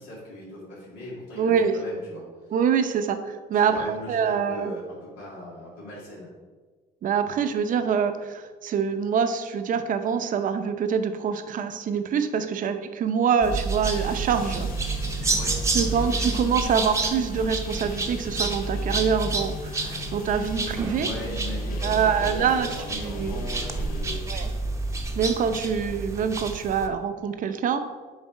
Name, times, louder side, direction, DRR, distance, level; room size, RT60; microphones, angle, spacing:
voice 1, 0.0-2.2 3.6-6.3 15.3-16.0 20.9-24.3, left 1 dB, 90° left, -6 dB, 2.2 m, -39 dB
voice 2, 1.4-1.8 2.5-4.7 7.0-14.7 15.7-21.1 21.8-23.5 24.3-24.5 25.2-27.9, right 7 dB, 50° right, 9 dB, 0.6 m, -25 dB
sound 1, 13.4-26.9, right 3 dB, 15° right, 0.7 m, -29 dB
sound 2, 13.8-24.2, left 8 dB, 55° left, 0.5 m, -40 dB
7.3 x 3.5 x 5.3 m, 1.4 s
cardioid pair, 110°, 17 cm